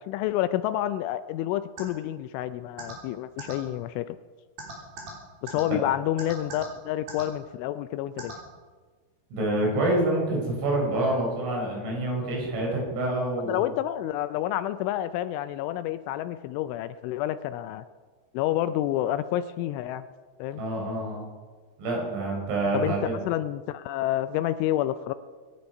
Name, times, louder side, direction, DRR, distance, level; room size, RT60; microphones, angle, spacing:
voice 1, 0.0-4.2 5.4-8.3 13.5-17.8 18.3-20.1 20.4-20.6 22.7-23.0 23.3-25.1, left 13 dB, 85° left, 12 dB, 2.9 m, -29 dB
sound 1, 1.8-1.9 2.8-2.9 3.4-3.5 4.6-5.1 5.5-5.6 6.2-6.7 7.1-7.2 8.2-8.3, right 4 dB, 55° right, 5.2 m, -37 dB
voice 2, 9.3-13.7 20.6-21.2 21.8-23.2, right 1 dB, 80° right, -1 dB, 6.9 m, -27 dB
25.0 x 10.5 x 5.3 m, 1.4 s
omnidirectional pair, 5.8 m